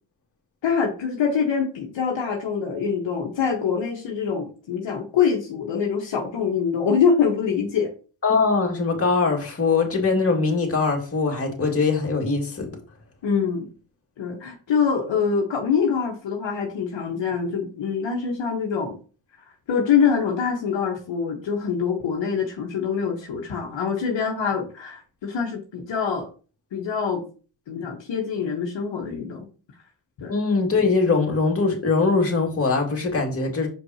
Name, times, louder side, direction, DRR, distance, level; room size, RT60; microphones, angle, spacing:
voice 1, 0.6-7.9 13.2-13.7 14.2-19.0 19.7-26.3 26.7-27.3 27.7-29.5 30.2-30.3, left 6 dB, 60° left, 0 dB, 1.5 m, -24 dB
voice 2, 8.2-12.7 30.3-33.7, left 4 dB, 25° left, -1 dB, 2.3 m, -22 dB
6.2 x 5.3 x 2.9 m, 0.36 s
cardioid pair, 85°, 50 cm